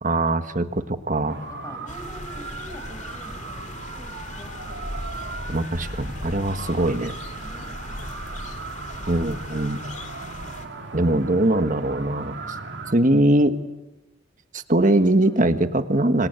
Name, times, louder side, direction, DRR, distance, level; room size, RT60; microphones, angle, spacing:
voice 1, 0.0-1.4 5.5-7.1 9.1-9.8 10.9-12.3 12.9-13.6 14.5-16.3, right 1 dB, 40° right, 9 dB, 1.5 m, -21 dB
sound 1, 1.3-12.9, right 3 dB, 60° right, 2.6 m, -37 dB
voice 2, 1.4-5.0 7.4-8.1 11.2-11.3 13.2-13.5 14.8-14.9 15.2-15.5, left 1 dB, 15° left, 6 dB, 5.2 m, -46 dB
sound 2, 1.9-10.7, left 1 dB, 40° left, 2.2 m, -38 dB
27.5 x 25.5 x 8.2 m, 1.0 s
head